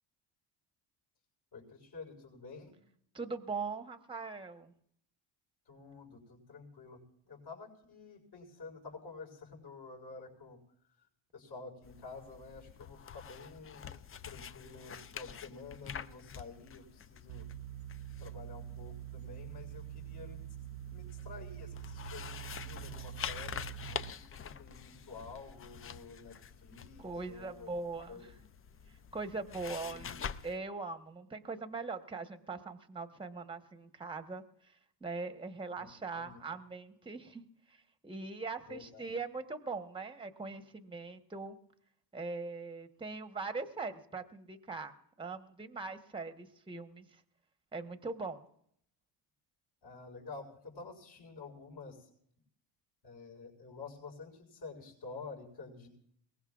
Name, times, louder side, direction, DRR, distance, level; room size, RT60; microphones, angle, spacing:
voice 1, 1.5-2.8 5.7-10.6 11.3-13.9 14.2-17.4 18.2-20.4 20.8-27.7 28.1-28.3 29.8-30.1 35.8-35.9 36.2-36.4 38.6-39.0 49.8-52.1 53.0-55.9, left 4 dB, 55° left, -4 dB, 6.1 m, -50 dB
voice 2, 3.1-4.7 27.0-28.3 29.1-30.2 30.4-34.4 35.0-37.4 37.7-37.8 38.0-41.6 42.1-47.2 47.7-48.4, right 4 dB, 10° right, 8 dB, 1.1 m, -41 dB
sound 1, 11.8-30.6, left 7 dB, 30° left, 0.5 m, -47 dB
sound 2, 17.3-24.1, right 13 dB, 55° right, 0.6 m, -45 dB
22.5 x 19.0 x 2.4 m, 0.68 s
cardioid pair, 105°, 48 cm